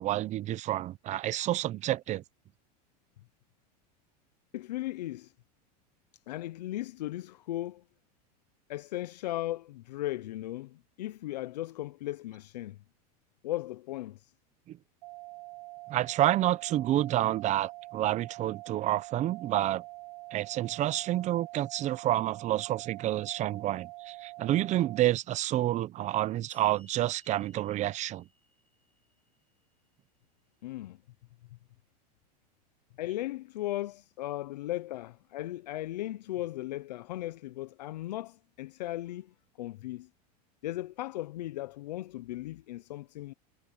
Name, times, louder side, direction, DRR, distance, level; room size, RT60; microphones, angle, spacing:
voice 1, 0.0-2.2 14.7-14.8 15.9-19.8 20.3-28.2, right 14 dB, 35° right, 0.8 m, -29 dB
voice 2, 4.5-5.3 6.3-7.8 8.7-12.8 13.4-14.3 30.6-31.0 33.0-40.1 40.6-43.3, left 15 dB, 90° left, 0.7 m, -37 dB
sound 1, 15.0-25.0, right 21 dB, 80° right, 3.1 m, -45 dB
sound 2, 26.5-29.9, left 1 dB, 5° left, 4.4 m, -62 dB
supercardioid pair, 125°, 21 cm